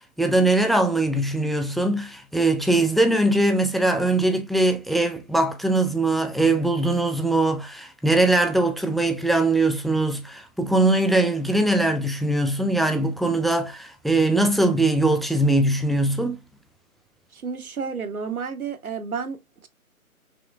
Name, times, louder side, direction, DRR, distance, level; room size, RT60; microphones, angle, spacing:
voice 1, 0.2-16.4, right 2 dB, ahead, 0.3 m, -21 dB
voice 2, 17.3-19.7, right 5 dB, 75° right, 1.0 m, -31 dB
5.7 x 3.0 x 2.4 m
figure-of-eight pair, 155°, 43 cm